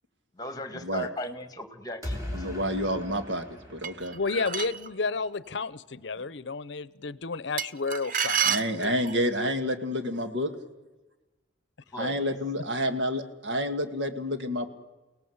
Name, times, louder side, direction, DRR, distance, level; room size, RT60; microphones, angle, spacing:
voice 1, 0.4-2.5 11.9-12.3, left 1 dB, 20° left, 10 dB, 2.0 m, -37 dB
sound 1, 2.0-4.9, left 1 dB, 15° right, 5.7 m, -39 dB
voice 2, 2.3-4.2 8.4-10.5 12.0-14.7, equal, 65° right, 8 dB, 2.1 m, -29 dB
sound 2, 3.8-4.9 7.6-9.2, right 7 dB, 45° right, 0.7 m, -29 dB
voice 3, 4.1-8.9, left 4 dB, 65° left, 18 dB, 0.7 m, -32 dB
29.5 x 18.0 x 8.0 m, 1.1 s
head